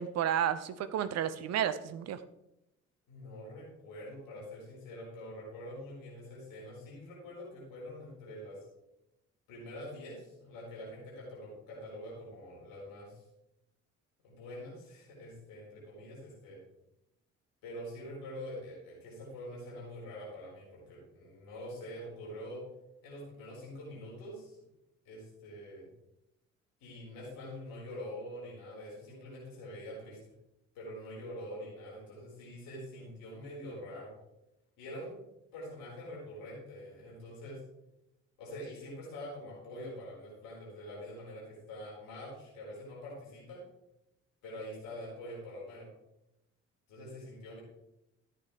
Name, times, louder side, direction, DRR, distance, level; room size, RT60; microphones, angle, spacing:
voice 1, 0.0-2.2, right 9 dB, 45° right, 12 dB, 0.7 m, -31 dB
voice 2, 3.1-8.6 9.5-13.2 14.2-16.6 17.6-22.6 23.0-24.6 25.0-25.9 26.8-30.2 30.7-34.1 34.8-35.1 35.5-37.6 38.4-43.6 44.4-45.9 46.9-47.6, left 1 dB, 65° left, -5 dB, 4.6 m, -45 dB
14.0 x 8.7 x 3.3 m, 0.88 s
figure-of-eight pair, 40°, 37 cm